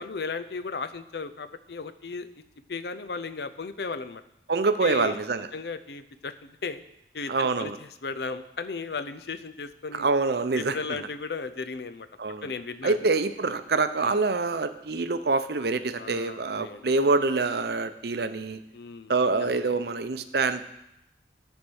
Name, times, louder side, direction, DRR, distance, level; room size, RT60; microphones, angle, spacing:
voice 1, 0.0-2.3 2.7-4.2 4.8-5.2 5.5-6.8 7.1-10.1 10.5-12.1 12.4-13.1 14.0-14.2 16.0-16.9 18.7-19.8, left 4 dB, 70° left, 11 dB, 0.6 m, -36 dB
voice 2, 4.5-5.5 7.3-7.8 9.9-11.0 12.2-12.5 12.8-18.6 19.1-20.7, right 3 dB, 65° right, 10 dB, 0.6 m, -26 dB
11.5 x 4.5 x 6.3 m, 0.82 s
head